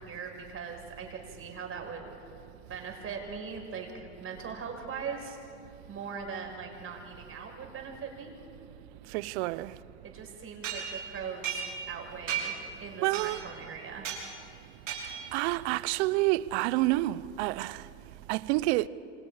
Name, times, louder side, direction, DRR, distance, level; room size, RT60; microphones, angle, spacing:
voice 1, 0.0-2.0 2.7-5.4 5.9-8.4 10.0-14.1, right 5 dB, 35° right, 5.8 m, -40 dB
voice 2, 9.1-9.7 13.0-13.4 15.3-17.8 18.3-18.9, right 19 dB, 65° right, 0.8 m, -28 dB
sound 1, 10.6-12.0 12.3-12.7 13.1-13.6 14.0-14.3 14.9-15.4, right 8 dB, 90° right, 6.0 m, -35 dB
28.0 x 26.5 x 5.0 m
hypercardioid pair, 90°, 36 cm